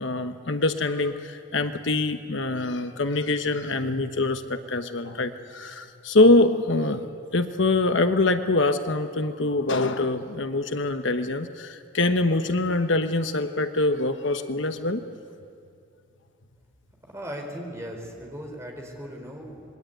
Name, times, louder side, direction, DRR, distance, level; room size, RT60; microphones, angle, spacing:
voice 1, 0.0-15.0, left 2 dB, 65° left, 8 dB, 1.1 m, -24 dB
voice 2, 17.0-19.6, equal, 15° right, 1 dB, 4.4 m, -37 dB
26.5 x 22.0 x 9.3 m, 2.5 s
head